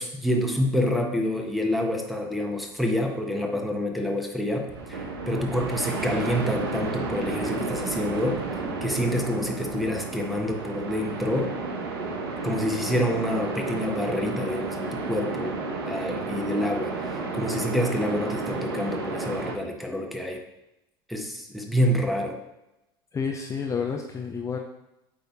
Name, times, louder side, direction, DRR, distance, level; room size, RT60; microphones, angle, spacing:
voice 1, 0.0-8.4 8.8-11.5 12.4-15.6 15.9-20.4 21.1-22.4, left 1 dB, ahead, 1 dB, 1.2 m, -27 dB
sound 1, 4.7-19.6, right 3 dB, 75° right, 1.0 m, -32 dB
voice 2, 23.1-24.6, left 6 dB, 25° left, 2 dB, 0.7 m, -30 dB
8.6 x 3.4 x 4.1 m, 0.90 s
hypercardioid pair, 80°, 13 cm